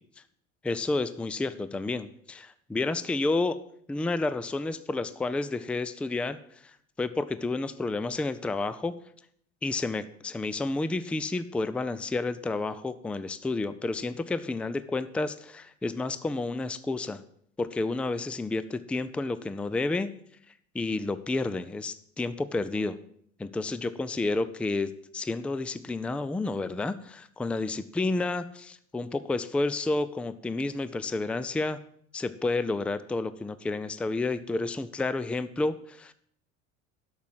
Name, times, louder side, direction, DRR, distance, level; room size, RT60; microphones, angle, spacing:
voice 1, 0.6-3.6 3.9-6.4 7.0-8.9 9.6-17.2 17.6-20.1 20.7-23.0 23.4-31.8 32.1-36.1, left 3 dB, 5° left, 14 dB, 0.4 m, -30 dB
12.0 x 6.4 x 7.4 m, 0.66 s
figure-of-eight pair, 65°, 40 cm